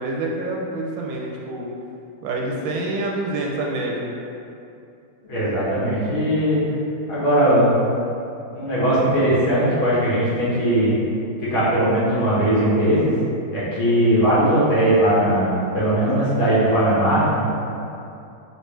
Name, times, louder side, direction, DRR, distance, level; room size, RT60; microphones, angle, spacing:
voice 1, 0.0-1.7 2.2-4.1, right 2 dB, 75° right, -2 dB, 1.3 m, -27 dB
voice 2, 5.2-6.6 7.1-7.8 8.5-10.9 11.4-13.1 13.5-17.5, right 1 dB, 75° left, -10 dB, 2.3 m, -19 dB
5.2 x 3.2 x 3.2 m, 2.6 s
omnidirectional pair, 2.2 m